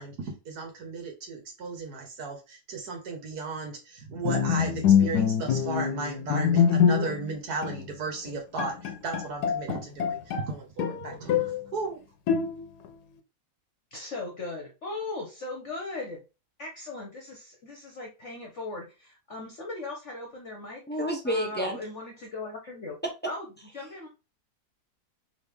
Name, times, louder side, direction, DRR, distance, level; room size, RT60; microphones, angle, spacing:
voice 1, 0.0-12.0, right 4 dB, 70° right, 1.8 m, -35 dB
Bowed string instrument, 4.3-7.3 7.6-7.8 8.3-8.4 8.6-10.5 10.8-11.6 12.3-12.9, left 8 dB, 80° left, 1.2 m, -24 dB
voice 2, 13.9-16.2 16.6-21.0 21.2-23.0 23.3-24.1, left 2 dB, 50° left, 1.2 m, -38 dB
voice 3, 20.9-21.8, equal, 15° left, 0.4 m, -29 dB
4.1 x 3.4 x 3.4 m
omnidirectional pair, 1.7 m